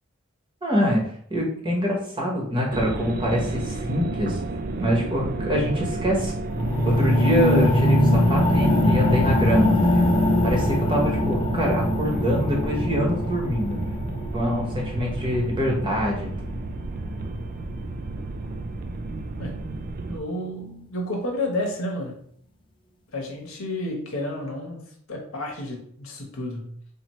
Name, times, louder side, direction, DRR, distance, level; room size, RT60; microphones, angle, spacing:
voice 1, 0.6-1.0 1.3-4.4 4.8-6.3 6.8-10.1 10.4-13.8 14.3-16.6, equal, 25° right, -2 dB, 1.0 m, -25 dB
sound 1, 2.7-20.2, right 2 dB, 45° right, 0.3 m, -31 dB
sound 2, 6.5-16.6 17.3-17.4, left 1 dB, 25° left, 0.4 m, -23 dB
voice 2, 19.4-19.7 20.1-22.2 23.1-24.8 25.1-26.8, left 1 dB, 80° left, 1 dB, 1.1 m, -31 dB
4.1 x 2.8 x 3.0 m, 0.64 s
head